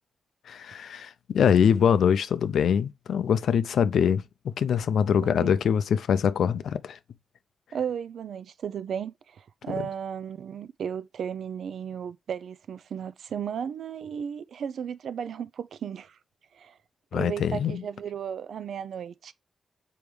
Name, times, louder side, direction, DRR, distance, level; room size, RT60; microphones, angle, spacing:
voice 1, 0.5-7.0 17.1-17.8, left 7 dB, 85° left, 0.5 m, -24 dB
voice 2, 5.2-5.5 7.7-16.2 16.5-16.8 17.1-19.3, right 8 dB, 75° right, 0.5 m, -35 dB
7.0 x 4.6 x 3.3 m
wide cardioid pair, 150°, 0 cm